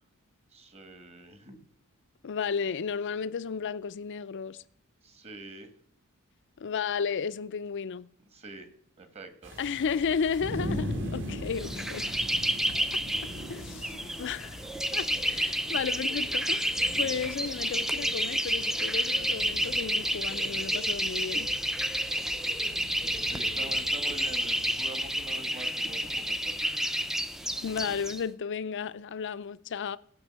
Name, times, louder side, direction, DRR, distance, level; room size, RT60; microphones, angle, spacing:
voice 1, 0.5-1.6 5.0-5.7 8.3-8.7 9.0-9.5 23.3-26.5, right 2 dB, 30° right, 1.4 m, -45 dB
voice 2, 2.2-4.6 6.6-8.1 9.6-12.0 12.9-13.0 13.5-14.6 14.9-21.5 27.6-30.0, left 6 dB, 55° left, 0.4 m, -33 dB
sound 1, 9.4-25.4, equal, 55° right, 2.3 m, -41 dB
sound 2, 11.5-28.2, equal, ahead, 0.4 m, -30 dB
16.0 x 5.4 x 7.4 m
head